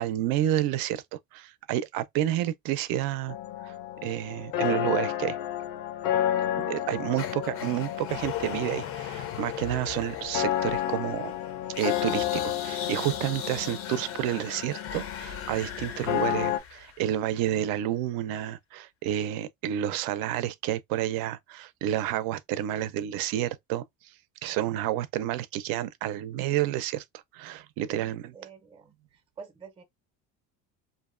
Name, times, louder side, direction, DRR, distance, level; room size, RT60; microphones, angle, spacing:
voice 1, 0.0-3.4 3.6-3.7 4.0-5.4 6.6-11.3 11.8-23.8 24.4-28.3, right 12 dB, 70° right, 0.5 m, -30 dB
sound 1, 3.3-16.6, left 12 dB, 90° left, 0.6 m, -31 dB
sound 2, 7.2-17.3, left 9 dB, 40° left, 0.4 m, -39 dB
voice 2, 27.9-29.8, right 5 dB, 15° right, 0.5 m, -48 dB
2.5 x 2.1 x 2.4 m
cardioid pair, 135°, 37 cm